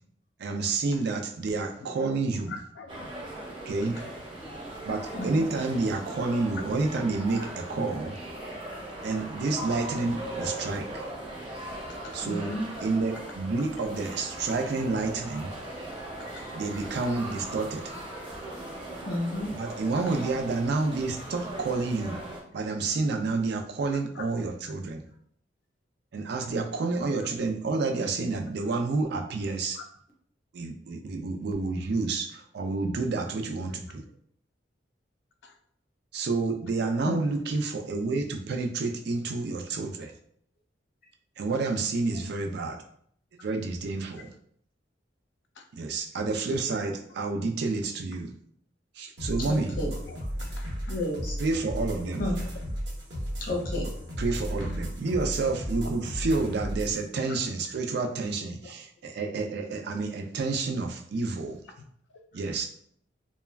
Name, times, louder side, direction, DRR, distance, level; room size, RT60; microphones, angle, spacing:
voice 1, 0.4-2.6 3.7-4.0 4.8-8.2 9.0-11.0 12.1-15.5 16.5-17.9 19.5-22.2 22.5-25.0 26.1-29.8 30.5-34.0 36.1-40.1 41.4-42.8 43.4-44.3 45.7-48.3 49.0-49.8 51.4-52.3 54.2-61.6 62.3-62.6, right 3 dB, 60° right, 0.4 m, -29 dB
voice 2, 2.5-3.1 3.8-3.9 8.4-8.5 11.9-12.1 15.6-15.7 16.2-16.4 23.9-24.2 29.7-29.8 35.4-35.5 37.0-37.1 42.1-42.2 43.4-43.5 45.6-45.7 50.1-50.9 55.7-55.9 57.3-57.4 58.6-58.7, left 4 dB, 65° left, 0.3 m, -46 dB
sound 1, 2.9-22.4, right 1 dB, 30° right, 0.7 m, -39 dB
voice 3, 5.1-5.5 12.2-12.7 19.0-19.5 37.0-37.2 49.4-49.9 50.2-50.3 50.9-51.3 52.2-52.4 53.4-53.9, left 1 dB, 50° left, 0.8 m, -31 dB
sound 2, 49.2-57.0, equal, 80° right, 0.9 m, -34 dB
2.2 x 2.1 x 3.3 m
head